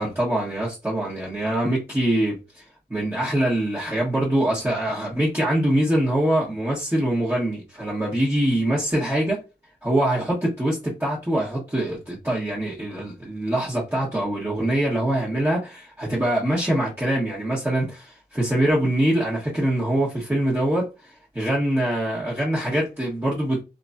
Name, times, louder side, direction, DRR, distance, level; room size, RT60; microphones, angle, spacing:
voice 1, 0.0-2.6 2.9-9.4 9.8-23.6, right 1 dB, 15° right, 1.2 m, -24 dB
3.0 x 2.6 x 2.3 m
wide cardioid pair, 75°, 18 cm